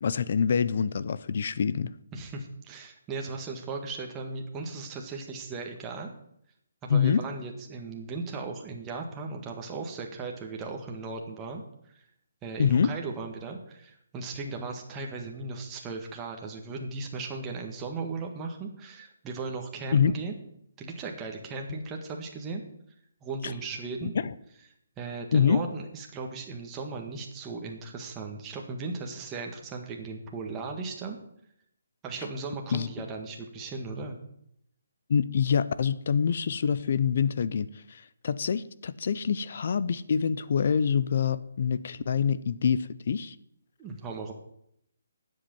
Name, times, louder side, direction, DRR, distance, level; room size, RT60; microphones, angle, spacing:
voice 1, 0.0-1.9 6.9-7.2 12.6-12.9 19.9-20.1 24.0-24.3 25.3-25.6 32.7-32.9 35.1-43.4, left 7 dB, 50° left, 16 dB, 0.6 m, -26 dB
voice 2, 2.1-6.1 6.8-11.6 11.9-12.0 12.4-20.3 20.8-22.6 23.2-24.1 25.0-31.2 32.0-34.2 43.8-44.3, right 3 dB, 15° right, 1 dB, 1.7 m, -37 dB
9.8 x 7.8 x 9.4 m, 0.74 s
hypercardioid pair, 165°, 0 cm